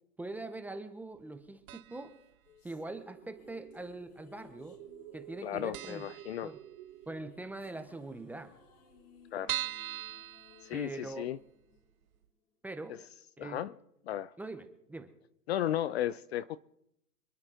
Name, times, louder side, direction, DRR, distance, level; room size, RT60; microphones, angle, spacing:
voice 1, 0.2-2.2 2.6-4.8 5.1-6.1 6.4-6.6 7.1-8.5 10.7-11.3 12.6-13.0 13.4-13.6 14.4-15.1, right 2 dB, 5° right, 8 dB, 0.6 m, -43 dB
sound 1, 1.7-2.2 2.5-2.6 3.5-4.2 4.5-4.6 4.9-5.0 5.4-5.5 5.7-7.1 7.4-7.5 7.8-7.9 8.1-8.2 8.7-11.3 11.8-11.9 12.2-12.3, right 14 dB, 65° right, 0.6 m, -41 dB
sound 2, 2.1-12.5, left 6 dB, 70° left, 3.5 m, -61 dB
sound 3, 2.7-9.2, right 13 dB, 35° right, 1.3 m, -52 dB
voice 2, 5.4-6.5 9.3-9.6 10.6-11.4 13.4-13.7 14.1-14.3 15.5-16.6, left 12 dB, 45° left, 17 dB, 0.5 m, -34 dB
26.5 x 9.7 x 3.7 m, 0.78 s
hypercardioid pair, 125°, 47 cm